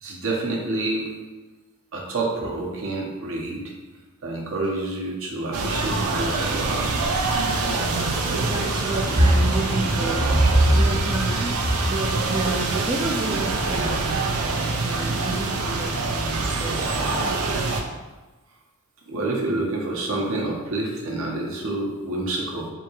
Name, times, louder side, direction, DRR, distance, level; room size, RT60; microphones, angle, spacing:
voice 1, 0.0-1.1 1.9-3.6 4.2-7.0 10.2-10.8 19.1-22.7, right 2 dB, 65° right, -2 dB, 1.0 m, -26 dB
sound 1, 5.5-17.8, right 3 dB, 85° right, 0.6 m, -25 dB
voice 2, 7.8-10.3 10.7-11.6 11.9-17.3, right 2 dB, 20° right, -2 dB, 0.3 m, -31 dB
3.6 x 2.8 x 4.5 m, 1.2 s
head